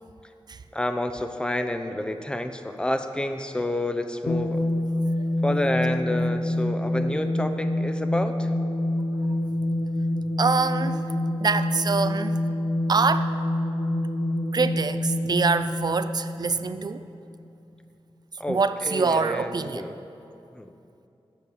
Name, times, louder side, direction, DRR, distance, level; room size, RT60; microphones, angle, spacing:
voice 1, 0.7-4.6 5.4-8.5 18.4-20.0 20.5-20.7, left 1 dB, 10° left, 8 dB, 0.5 m, -29 dB
sound 1, 4.3-17.1, left 1 dB, 80° left, 0.8 m, -27 dB
voice 2, 10.4-11.0 11.4-12.3 12.9-13.3 14.5-17.0 18.5-19.9, right 4 dB, 40° right, 12 dB, 0.4 m, -25 dB
7.2 x 6.4 x 7.1 m, 2.7 s
wide cardioid pair, 65°, 10 cm